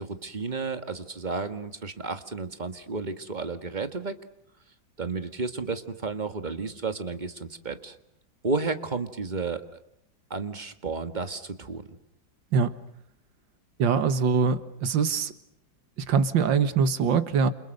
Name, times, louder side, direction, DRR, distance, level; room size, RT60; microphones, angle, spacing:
voice 1, 0.0-4.2 5.0-8.0 8.4-9.6 10.3-11.8, right 4 dB, 25° right, 9 dB, 1.7 m, -32 dB
voice 2, 13.8-15.3 16.0-17.5, right 6 dB, 70° right, 12 dB, 2.1 m, -23 dB
29.0 x 29.0 x 6.6 m, 0.73 s
omnidirectional pair, 2.1 m